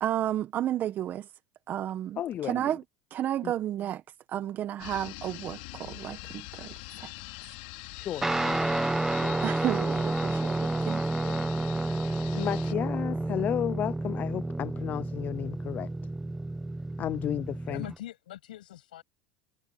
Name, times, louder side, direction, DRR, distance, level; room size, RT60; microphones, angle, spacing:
voice 1, 0.0-1.3 1.7-2.8 3.1-4.0 4.3-7.1 9.4-11.0, right 11 dB, 45° right, 1.4 m, -32 dB
voice 2, 2.2-2.6 3.4-3.5 7.9-9.4 11.2-11.5 12.3-15.9 17.0-17.8, left 11 dB, 40° left, 0.4 m, -33 dB
sound 1, 4.8-12.7, left 25 dB, 70° left, 3.2 m, -43 dB
Guitar, 8.2-18.0, right 2 dB, 10° right, 1.1 m, -30 dB
voice 3, 17.7-19.0, left 13 dB, 90° left, 7.5 m, -42 dB
supercardioid pair, 100°, 5 cm